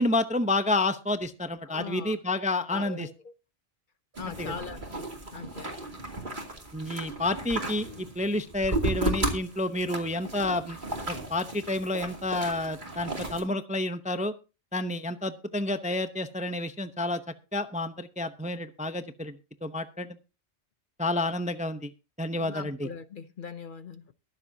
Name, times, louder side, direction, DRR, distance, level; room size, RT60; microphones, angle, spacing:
voice 1, 0.0-3.1 4.4-4.5 6.7-10.8 11.1-14.3 14.7-17.2 17.5-20.2 21.0-21.9 22.2-22.9, left 2 dB, 10° right, 0.5 m, -30 dB
voice 2, 1.6-2.2 2.7-3.3 4.2-5.0 5.3-5.9 22.4-24.1, left 6 dB, 50° left, 0.7 m, -41 dB
sound 1, 4.1-13.4, right 2 dB, 40° right, 2.8 m, -34 dB
22.0 x 7.5 x 2.7 m
omnidirectional pair, 1.2 m